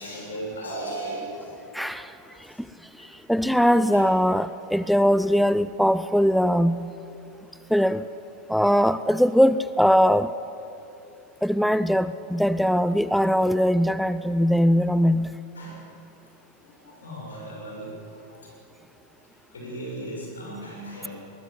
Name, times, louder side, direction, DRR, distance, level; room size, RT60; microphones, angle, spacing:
voice 1, 0.0-1.5 2.2-2.4 3.0-3.1 3.9-4.2 15.5-15.8 16.7-17.9 18.3-18.4 19.5-21.2, right 1 dB, 70° left, -1 dB, 6.8 m, -36 dB
voice 2, 1.7-2.1 3.3-6.9 7.7-8.1 8.5-10.3 11.4-15.4, equal, ahead, 14 dB, 0.4 m, -21 dB
20.5 x 19.0 x 8.2 m, 2.9 s
figure-of-eight pair, 90°, 0 cm